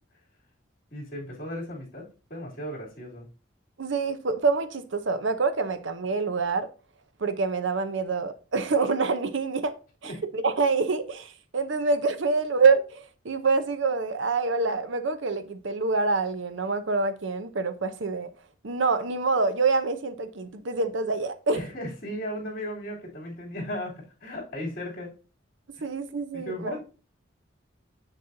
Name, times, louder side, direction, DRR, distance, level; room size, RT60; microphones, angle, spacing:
voice 1, 0.9-3.3 10.0-10.2 21.5-25.1 26.3-26.8, equal, 45° left, 3.0 m, -36 dB
voice 2, 3.8-6.7 7.2-9.7 10.0-18.3 18.6-21.6 25.8-26.8, right 4 dB, 70° right, 0.7 m, -26 dB
7.3 x 6.6 x 2.7 m
head